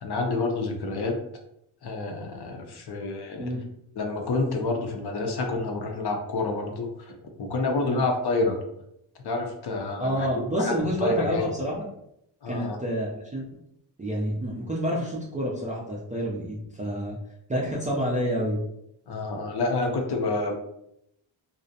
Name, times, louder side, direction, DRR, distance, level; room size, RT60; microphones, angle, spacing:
voice 1, 0.0-1.1 1.8-3.5 4.0-8.6 9.2-10.3 10.6-11.5 12.4-12.8 19.1-20.6, left 3 dB, 55° left, 3 dB, 0.6 m, -28 dB
voice 2, 10.0-11.9 12.5-13.5 14.0-17.2 17.5-18.6, equal, 20° right, -5 dB, 0.3 m, -28 dB
2.5 x 2.0 x 2.6 m, 0.77 s
cardioid pair, 115°, 48 cm